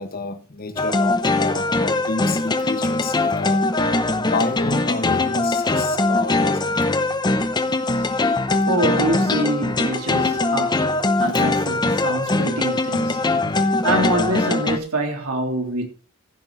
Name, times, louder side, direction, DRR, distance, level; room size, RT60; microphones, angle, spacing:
voice 1, 0.0-3.6 4.2-7.1 10.7-11.9 12.3-12.5 13.0-13.6, left 3 dB, 40° left, 1.5 m, -31 dB
sound 1, 0.8-14.8, left 2 dB, 20° left, 0.8 m, -21 dB
voice 2, 8.6-10.8 11.2-13.2 13.8-15.9, right 1 dB, 75° right, 3.4 m, -25 dB
15.5 x 6.0 x 4.9 m
head